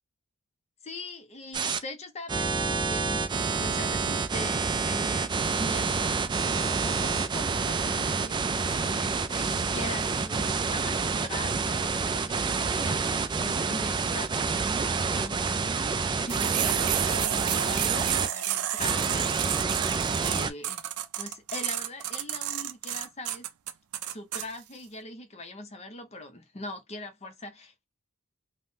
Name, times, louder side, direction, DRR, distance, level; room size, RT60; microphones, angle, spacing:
voice 1, 0.8-15.8 16.2-20.9 21.2-23.5 24.1-27.8, left 2 dB, 30° left, 0.6 m, -41 dB
sound 1, 1.5-1.8 2.3-18.3 18.8-20.5, right 4 dB, 20° right, 0.3 m, -28 dB
sound 2, 16.3-24.5, right 12 dB, 85° right, 0.4 m, -31 dB
3.5 x 2.0 x 2.7 m
head